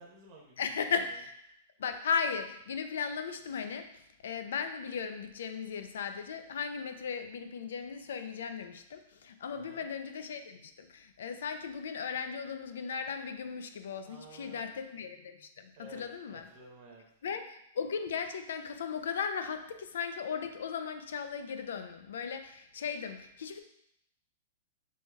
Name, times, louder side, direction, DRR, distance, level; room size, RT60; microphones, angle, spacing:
voice 1, 0.0-0.6 9.5-9.9 14.1-14.8 15.8-17.0, right 2 dB, 35° right, -1 dB, 0.9 m, -52 dB
voice 2, 0.6-1.3 1.8-3.9 4.2-16.5 17.2-23.6, left 6 dB, 85° left, 8 dB, 0.4 m, -36 dB
6.2 x 2.8 x 2.2 m, 0.75 s
supercardioid pair, 170°, 0 cm